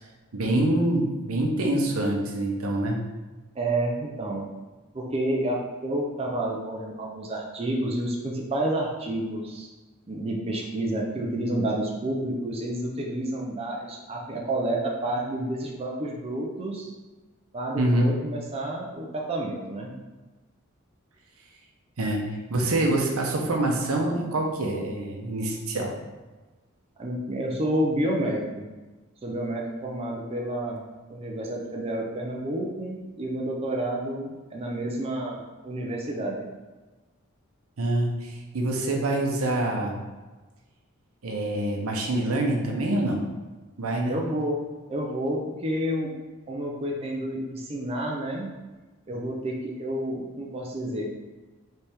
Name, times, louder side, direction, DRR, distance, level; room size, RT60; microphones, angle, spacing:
voice 1, 0.3-3.0 17.8-18.2 22.0-22.2 22.5-25.9 37.8-40.0 41.2-43.2 43.8-44.2, right 1 dB, 80° right, 1 dB, 0.8 m, -25 dB
voice 2, 3.6-4.5 4.9-9.7 10.1-16.9 17.5-19.9 27.0-28.7 29.2-30.8 31.1-36.5 44.1-44.6 44.9-46.1 46.5-48.5 49.1-51.1, right 1 dB, 30° right, -1 dB, 0.6 m, -29 dB
3.4 x 3.4 x 4.3 m, 1.2 s
head